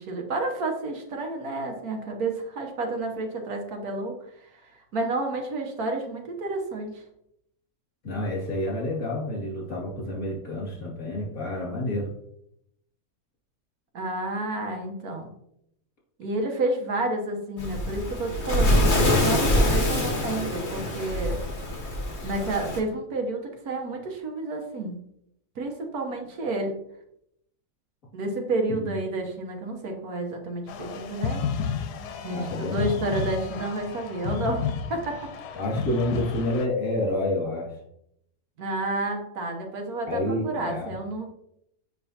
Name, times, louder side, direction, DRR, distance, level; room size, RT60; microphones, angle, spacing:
voice 1, 0.0-4.2 4.5-7.0 13.9-15.3 16.2-21.4 22.2-25.0 25.6-26.7 28.1-31.4 32.2-35.2 38.6-41.3, right 2 dB, 75° right, 3 dB, 1.5 m, -30 dB
voice 2, 8.0-12.1 28.7-29.0 32.3-33.0 35.5-37.7 40.1-40.9, left 1 dB, 60° left, -4 dB, 2.8 m, -29 dB
Waves surf, 17.6-22.8, left 1 dB, 45° left, 1.6 m, -24 dB
sound 1, 30.7-36.7, left 6 dB, 85° left, 1.2 m, -32 dB
7.3 x 5.4 x 2.8 m, 0.76 s
omnidirectional pair, 1.7 m